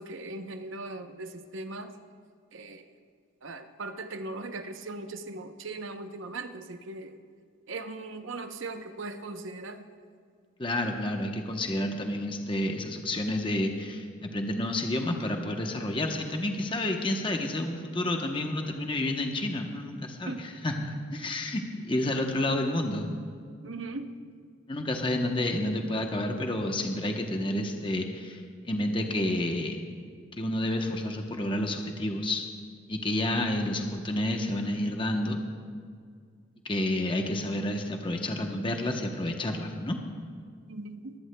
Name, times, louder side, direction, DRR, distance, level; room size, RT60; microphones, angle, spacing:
voice 1, 0.0-1.9 2.5-2.8 3.4-7.1 7.7-9.8 20.3-20.4 23.6-24.1 40.7-41.2, right 2 dB, 70° right, 7 dB, 0.8 m, -39 dB
voice 2, 10.6-23.1 24.7-29.8 30.4-32.5 32.9-35.4 36.6-40.0, left 1 dB, 25° left, 3 dB, 0.9 m, -30 dB
22.5 x 15.0 x 2.2 m, 2.1 s
head